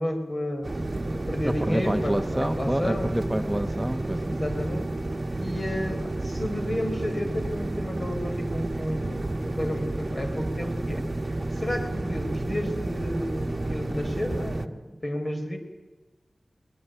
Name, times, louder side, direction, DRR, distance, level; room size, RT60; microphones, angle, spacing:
voice 1, 0.0-3.1 4.3-4.9 5.4-11.1 11.5-15.6, left 1 dB, 40° left, 5 dB, 4.5 m, -32 dB
sound 1, 0.6-14.7, right 2 dB, 40° right, 1.3 m, -31 dB
voice 2, 1.4-4.4, right 1 dB, 5° right, 6 dB, 1.1 m, -28 dB
21.0 x 20.5 x 9.3 m, 1.1 s
wide cardioid pair, 55°, 0 cm